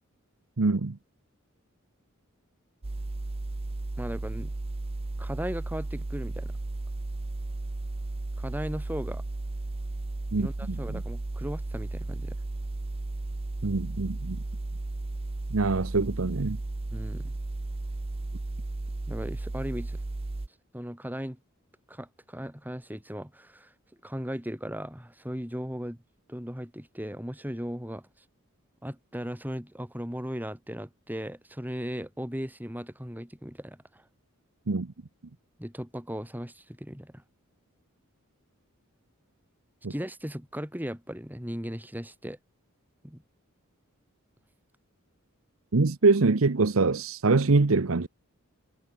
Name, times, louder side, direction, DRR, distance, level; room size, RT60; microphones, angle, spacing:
voice 1, 0.6-1.0 10.3-11.0 13.6-14.4 15.5-16.6 34.7-34.9 39.8-39.9 45.7-48.1, right 3 dB, 70° right, 0.9 m, -24 dB
sound 1, 2.8-20.5, right 2 dB, 30° right, 0.5 m, -34 dB
voice 2, 4.0-4.5 5.2-6.5 8.4-9.2 10.4-12.4 16.9-17.3 19.1-20.0 20.7-21.4 21.9-23.7 24.0-26.0 26.3-28.1 28.8-34.0 35.6-37.2 39.9-42.4 43.0-43.2, equal, 10° right, 5.2 m, -37 dB
head